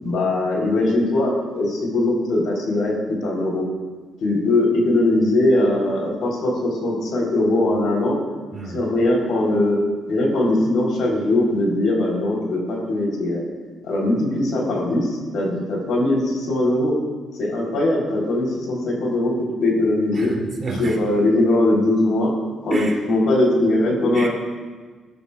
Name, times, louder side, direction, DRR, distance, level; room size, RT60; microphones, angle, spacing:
voice 1, 0.0-2.9 3.2-3.6 4.2-8.2 8.7-9.8 10.1-13.5 13.8-16.9 17.4-19.3 19.6-20.3 20.8-22.3 22.6-24.3, left 1 dB, 75° left, -2 dB, 3.9 m, -20 dB
voice 2, 20.1-21.0 22.7-23.0 24.1-24.3, right 2 dB, 40° right, -2 dB, 3.1 m, -28 dB
21.5 x 12.0 x 2.5 m, 1.4 s
cardioid pair, 90°, 0 cm